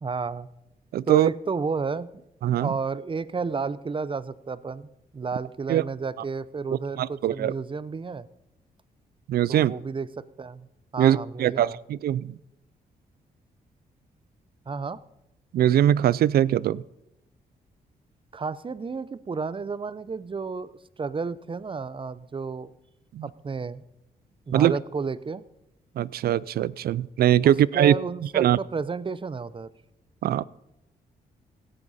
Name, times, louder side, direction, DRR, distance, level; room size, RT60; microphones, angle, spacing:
voice 1, 0.0-0.5 1.1-2.2 2.6-4.9 5.1-8.3 9.5-10.1 10.4-10.7 10.9-11.8 14.7-15.0 18.3-20.7 21.0-22.7 23.2-23.8 24.5-25.4 27.4-29.7, right 4 dB, 30° right, 17 dB, 0.7 m, -31 dB
voice 2, 0.9-1.3 2.4-2.7 5.7-5.8 7.0-7.5 9.3-9.7 11.0-12.3 15.5-16.8 23.1-23.3 24.5-24.7 26.0-27.9 28.3-28.6 30.2-30.4, right 11 dB, 75° right, 22 dB, 0.4 m, -21 dB
16.5 x 12.0 x 4.2 m, 0.87 s
cardioid pair, 70°, 16 cm